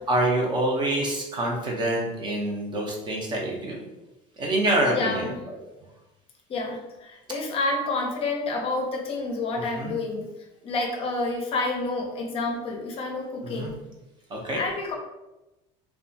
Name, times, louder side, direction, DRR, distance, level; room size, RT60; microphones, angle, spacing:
voice 1, 0.1-3.8 4.4-5.3 9.7-10.0 13.4-13.7 14.3-14.6, right 1 dB, 30° right, -1 dB, 0.6 m, -26 dB
voice 2, 4.9-5.4 6.5-10.3 10.6-13.8 14.5-14.9, left 3 dB, 40° left, 1 dB, 0.5 m, -29 dB
2.6 x 2.2 x 2.6 m, 0.99 s
cardioid pair, 125°, 14 cm